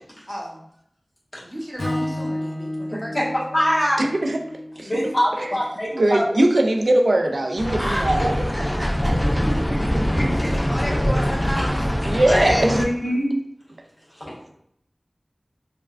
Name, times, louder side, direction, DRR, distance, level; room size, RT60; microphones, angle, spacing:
voice 1, 0.3-0.6 1.4-3.3 4.9-5.1 7.8-9.3 10.3-12.3 12.6-12.8, equal, 5° right, -3 dB, 0.8 m, -32 dB
Strum, 1.8-6.1, left 1 dB, 80° left, 0.5 m, -32 dB
voice 2, 2.9-3.2 3.5-4.0 4.8-6.3 9.2-10.6 12.2-13.3 14.2-14.3, equal, 40° left, -8 dB, 1.3 m, -24 dB
voice 3, 4.0-4.4 4.8-4.9 5.4-5.5 5.9-8.3 12.0-12.6, right 1 dB, 80° right, 3 dB, 0.3 m, -20 dB
sound 1, 7.6-12.9, equal, 15° left, 0.3 m, -23 dB
3.3 x 2.1 x 2.4 m, 0.70 s
wide cardioid pair, 45°, 0 cm